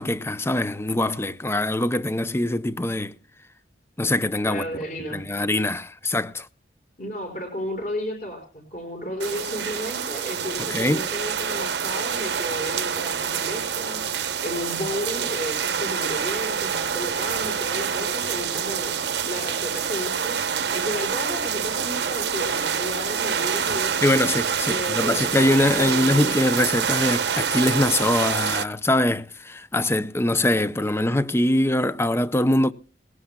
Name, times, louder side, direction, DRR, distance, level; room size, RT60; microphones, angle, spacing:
voice 1, 0.0-3.1 4.0-4.6 5.1-6.5 10.7-11.1 24.0-32.7, left 1 dB, 15° left, 0.6 m, -23 dB
voice 2, 4.4-5.2 7.0-14.0 14.4-18.9 19.2-20.4 20.7-24.1 24.7-25.2 25.8-26.4, left 1 dB, 45° left, 5.6 m, -33 dB
sound 1, 9.2-28.6, right 7 dB, 70° right, 0.9 m, -26 dB
20.5 x 17.5 x 2.3 m
head